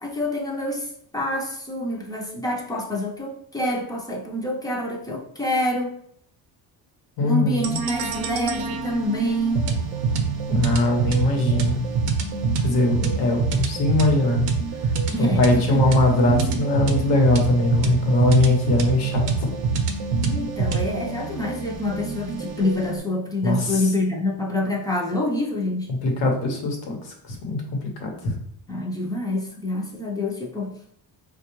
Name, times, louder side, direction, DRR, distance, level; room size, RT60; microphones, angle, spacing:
voice 1, 0.0-6.0 7.2-9.7 15.1-15.8 20.2-25.9 28.7-30.7, left 1 dB, 10° left, -1 dB, 0.5 m, -27 dB
voice 2, 7.2-7.8 10.5-11.8 12.6-14.4 15.2-19.5 23.4-23.8 26.0-27.1 27.4-28.3, left 2 dB, 75° left, 2 dB, 1.0 m, -21 dB
sound 1, 7.6-23.0, right 4 dB, 70° right, 0.6 m, -25 dB
4.3 x 2.3 x 2.9 m, 0.65 s
cardioid pair, 150°, 44 cm